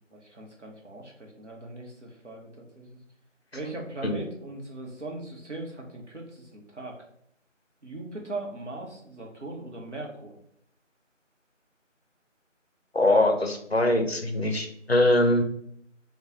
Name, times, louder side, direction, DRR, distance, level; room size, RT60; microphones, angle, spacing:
voice 1, 0.1-3.0 3.5-7.0 7.8-10.3, right 2 dB, 65° right, -1 dB, 1.0 m, -39 dB
voice 2, 12.9-15.4, left 1 dB, 55° left, 4 dB, 0.5 m, -22 dB
2.9 x 2.3 x 3.6 m, 0.71 s
figure-of-eight pair, 175°, 38 cm